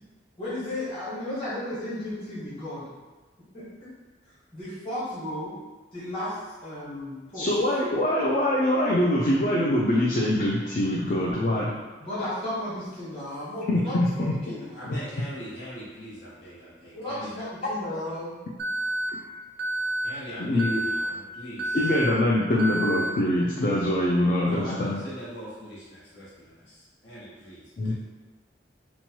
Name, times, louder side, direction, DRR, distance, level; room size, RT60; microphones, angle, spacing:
voice 1, 0.4-2.9 3.5-3.9 4.5-5.5 5.9-7.5 12.0-14.9 16.9-18.3, left 1 dB, 30° left, -11 dB, 1.2 m, -34 dB
voice 2, 7.3-11.8 13.7-14.4 20.4-20.8 21.7-25.0 27.8-27.9, left 1 dB, 45° left, -4 dB, 0.3 m, -24 dB
voice 3, 14.7-17.5 20.0-21.8 24.3-27.9, equal, 75° left, -8 dB, 1.0 m, -41 dB
Alarm, 18.6-19.1 19.6-20.1 20.6-21.1 21.6-22.1 22.6-23.1, right 1 dB, 80° right, 0.5 m, -28 dB
2.9 x 2.2 x 2.8 m, 1.3 s
head